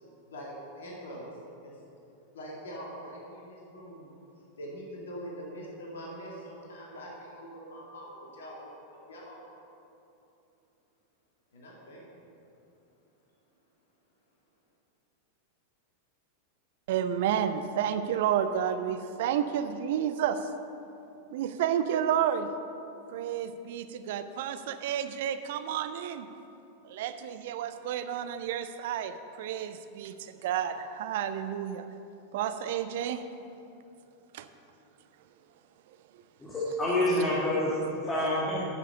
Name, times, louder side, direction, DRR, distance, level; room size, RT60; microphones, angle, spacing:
voice 1, 0.3-1.3 1.6-1.8 2.3-4.1 4.6-9.5 11.5-12.0, equal, 65° left, -3 dB, 2.2 m, -43 dB
voice 2, 16.9-20.5 21.3-22.5 23.1-26.3 26.8-31.9 32.3-33.3 34.3-34.5, right 9 dB, 55° right, 11 dB, 0.5 m, -31 dB
voice 3, 36.4-38.7, left 1 dB, 15° left, -7 dB, 1.8 m, -28 dB
9.8 x 6.7 x 6.8 m, 2.8 s
figure-of-eight pair, 90°, 0 cm